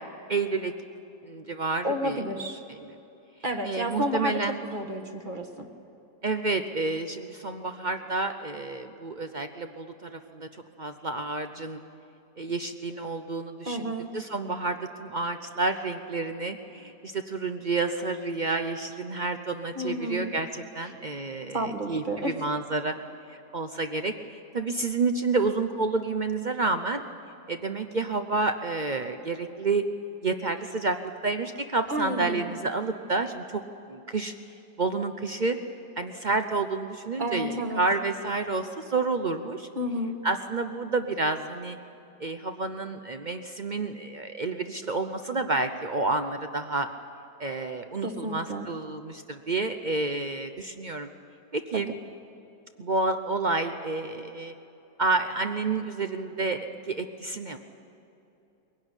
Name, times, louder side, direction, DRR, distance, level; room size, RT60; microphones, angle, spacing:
voice 1, 0.3-0.7 1.2-2.2 2.7-3.0 3.6-4.6 6.2-10.5 10.8-11.8 12.4-22.9 23.3-27.0 27.5-29.8 30.2-33.6 33.9-34.3 34.8-35.6 36.0-39.7 40.2-41.8 42.2-46.9 47.4-51.1 51.5-51.9 52.8-54.5 55.0-57.6, right 3 dB, 60° right, 7 dB, 0.4 m, -29 dB
voice 2, 1.8-2.6 3.4-5.7 13.6-14.1 19.7-20.3 21.5-22.3 31.9-32.6 37.2-37.9 39.7-40.2 48.0-48.7 51.7-51.8, equal, 30° right, 5 dB, 1.4 m, -31 dB
22.5 x 17.0 x 9.8 m, 2.9 s
omnidirectional pair, 1.9 m